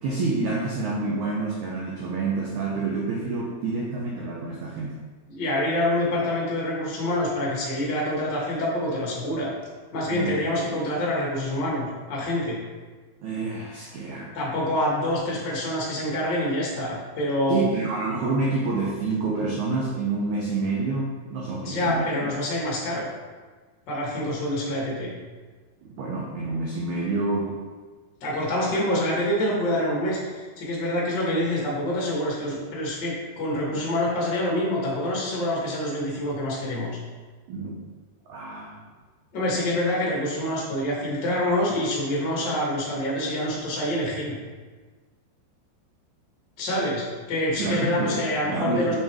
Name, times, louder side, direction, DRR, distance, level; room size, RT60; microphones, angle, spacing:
voice 1, 0.0-5.0 10.1-10.4 13.2-14.3 17.5-22.3 25.8-27.5 33.7-33.8 37.5-37.8 38.3-38.9 47.6-48.9, right 3 dB, 85° right, -3 dB, 1.7 m, -28 dB
voice 2, 5.3-9.5 9.9-12.6 14.3-17.6 21.6-23.1 23.9-25.1 28.2-36.9 39.3-44.4 46.6-48.9, left 1 dB, 40° left, -4 dB, 1.7 m, -26 dB
6.4 x 6.4 x 3.5 m, 1.4 s
omnidirectional pair, 4.5 m